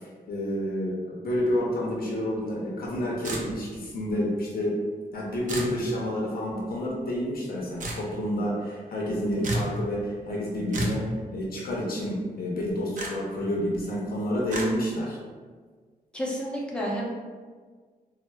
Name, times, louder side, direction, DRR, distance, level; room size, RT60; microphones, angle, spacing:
voice 1, 0.3-4.8 5.1-11.0 11.3-15.2, equal, 75° left, -3 dB, 0.6 m, -29 dB
sound 1, 3.2-3.8 5.5-5.8 7.8-8.0 9.4-9.7 10.7-11.0 13.0-13.1 14.5-14.7, right 1 dB, 55° right, 0.5 m, -30 dB
voice 2, 16.1-17.1, equal, 5° left, -4 dB, 0.6 m, -30 dB
4.0 x 2.0 x 2.2 m, 1.5 s
wide cardioid pair, 130°, 15 cm